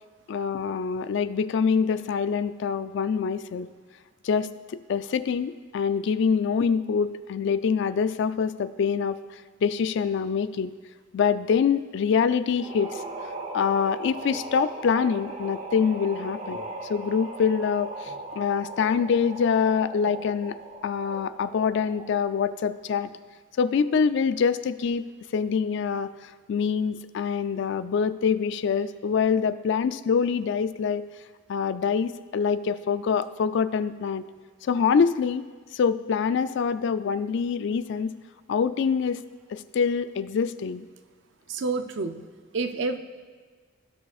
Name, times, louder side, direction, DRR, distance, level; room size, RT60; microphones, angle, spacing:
voice 1, 0.3-3.7 4.2-9.2 9.6-10.7 11.1-13.0 13.5-16.6 16.9-20.6 20.8-23.1 23.6-25.0 25.3-31.0 31.5-34.2 34.6-35.4 35.7-38.2 38.5-39.2 39.5-40.9, left 6 dB, 60° left, 14 dB, 0.3 m, -25 dB
sound 1, 12.5-22.3, right 2 dB, 35° right, 0.8 m, -38 dB
voice 2, 41.5-42.3 42.5-43.0, right 3 dB, 60° right, 9 dB, 0.5 m, -28 dB
16.5 x 6.7 x 2.4 m, 1.5 s
head